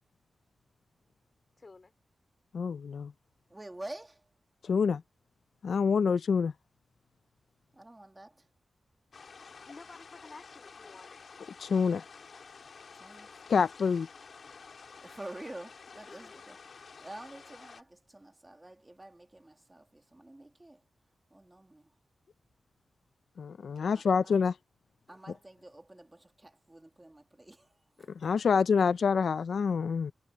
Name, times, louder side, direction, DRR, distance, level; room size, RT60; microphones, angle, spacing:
voice 1, 1.6-1.9 9.4-11.2 16.1-16.4 25.1-25.2, left 3 dB, 35° left, 4.1 m, -52 dB
voice 2, 2.5-3.1 4.6-5.0 5.6-6.5 11.6-12.0 13.5-14.1 23.4-24.5 28.2-30.1, left 6 dB, 75° left, 0.5 m, -27 dB
voice 3, 3.5-4.3 7.7-8.5 12.9-13.5 15.0-20.8 21.3-21.9 23.7-24.4 25.1-28.3, right 1 dB, 15° right, 2.3 m, -48 dB
sound 1, 9.1-17.8, left 5 dB, 60° left, 4.8 m, -51 dB
wide cardioid pair, 135°, 0 cm